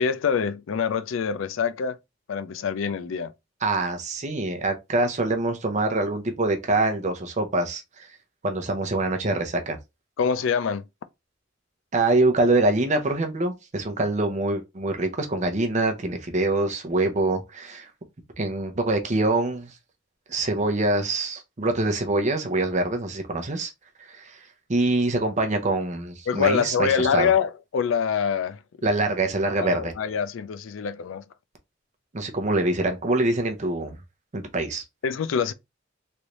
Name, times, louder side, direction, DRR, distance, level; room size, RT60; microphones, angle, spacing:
voice 1, 0.0-2.0 2.3-3.3 10.2-10.8 26.3-28.6 29.6-31.2 35.0-35.5, left 6 dB, 80° left, 0.4 m, -25 dB
voice 2, 3.6-8.1 8.4-9.8 11.9-17.9 18.4-19.7 20.3-23.7 24.1-24.4 24.7-27.3 28.8-29.9 32.1-34.0 34.3-34.8, right 2 dB, 35° right, 0.7 m, -25 dB
3.3 x 2.6 x 2.9 m
head